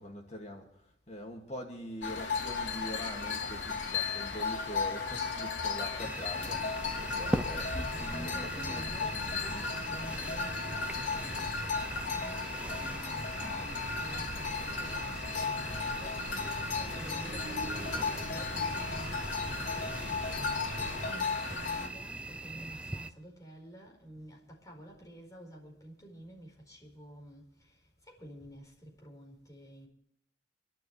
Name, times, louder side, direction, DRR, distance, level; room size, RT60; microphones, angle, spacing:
voice 1, 0.0-9.0 9.4-10.0, equal, 35° left, 2.3 m, -44 dB
sound 1, 2.0-21.9, left 4 dB, 80° left, 3.0 m, -35 dB
sound 2, 6.0-23.1, right 1 dB, 5° right, 0.5 m, -41 dB
sound 3, 6.5-21.1, right 1 dB, 85° right, 1.5 m, -46 dB
voice 2, 8.1-9.2 9.7-16.2 17.0-20.3 20.7-27.7 28.1-29.9, right 1 dB, 20° left, 4.7 m, -50 dB
28.0 x 12.0 x 3.3 m
head